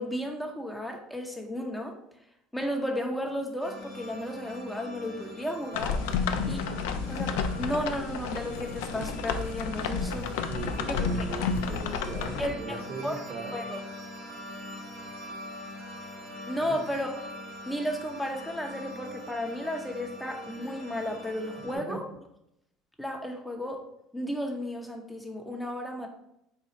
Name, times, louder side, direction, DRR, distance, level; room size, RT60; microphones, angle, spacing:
voice 1, 0.0-1.9 2.5-6.0 6.4-6.6 7.1-10.3 10.9-11.0 12.4-13.2 13.5-13.8 16.5-17.1 17.7-22.0 23.0-23.8 24.1-26.1, equal, 5° left, 2 dB, 0.6 m, -33 dB
sound 1, 3.6-21.8, equal, 85° right, 1.1 m, -43 dB
sound 2, 5.7-12.5, left 5 dB, 90° left, 0.4 m, -31 dB
voice 2, 10.0-13.6 16.6-16.8 21.6-22.0, right 5 dB, 45° right, 3 dB, 0.7 m, -40 dB
4.0 x 2.3 x 4.1 m, 0.79 s
supercardioid pair, 115°, 0 cm